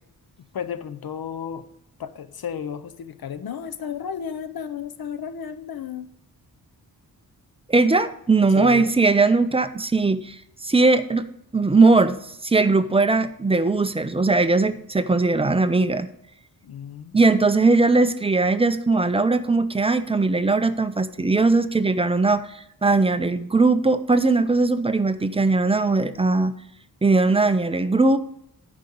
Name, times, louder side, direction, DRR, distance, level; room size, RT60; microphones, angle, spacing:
voice 1, 0.5-1.7 2.0-6.1 8.5-9.0 16.6-17.7, left 8 dB, 70° left, 11 dB, 0.7 m, -33 dB
voice 2, 7.7-11.3 11.5-16.1 17.1-26.5 27.0-28.2, right 3 dB, 15° right, 11 dB, 0.5 m, -19 dB
9.6 x 5.2 x 6.9 m, 0.76 s
wide cardioid pair, 130°, 38 cm